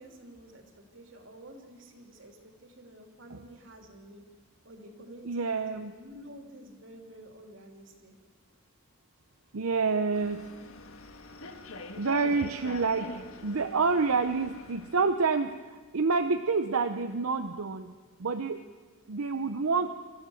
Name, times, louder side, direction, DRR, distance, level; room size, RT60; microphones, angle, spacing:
voice 1, 0.0-4.2 4.6-8.1, right 1 dB, 60° right, 4 dB, 3.1 m, -50 dB
voice 2, 5.3-5.9 9.5-10.5 12.0-13.2 13.4-15.6 15.9-17.9 18.2-18.6 19.1-19.9, right 4 dB, 85° right, 8 dB, 0.8 m, -28 dB
sound 1, 10.1-15.2, left 2 dB, 80° left, 1.7 m, -45 dB
28.0 x 14.0 x 7.2 m, 1.4 s
head